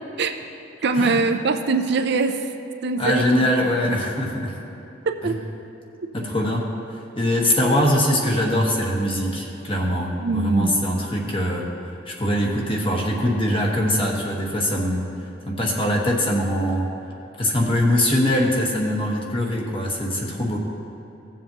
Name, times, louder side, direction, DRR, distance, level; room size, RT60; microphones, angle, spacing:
voice 1, 0.8-2.4 2.8-3.5 3.9-4.0 5.1-5.4 10.2-10.7, right 3 dB, 60° right, 6 dB, 0.5 m, -22 dB
voice 2, 3.0-4.5 5.2-5.4 6.1-6.7 7.2-11.7 12.1-15.1 15.5-16.9 17.4-20.6, left 1 dB, 30° left, -1 dB, 1.3 m, -22 dB
16.5 x 7.3 x 2.9 m, 3.0 s
head